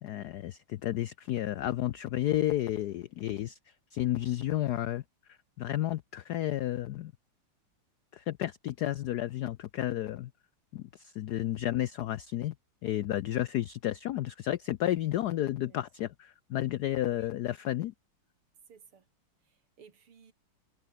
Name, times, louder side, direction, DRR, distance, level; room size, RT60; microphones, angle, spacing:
voice 1, 0.0-3.6 3.9-5.0 5.6-7.1 8.1-10.3 10.7-12.5 12.8-17.9, left 13 dB, 85° left, 0.8 m, -32 dB
voice 2, 18.7-19.1 19.4-20.3, right 6 dB, 90° right, 3.4 m, -57 dB
omnidirectional pair, 2.4 m